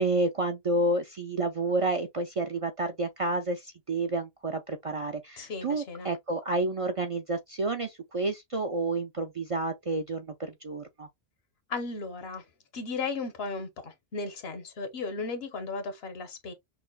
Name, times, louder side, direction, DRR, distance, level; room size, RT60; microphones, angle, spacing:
voice 1, 0.0-11.1, right 2 dB, 45° right, 0.4 m, -30 dB
voice 2, 5.4-6.1 11.7-12.4 12.7-16.5, left 4 dB, 75° left, 1.1 m, -35 dB
5.8 x 2.1 x 2.3 m
omnidirectional pair, 1.1 m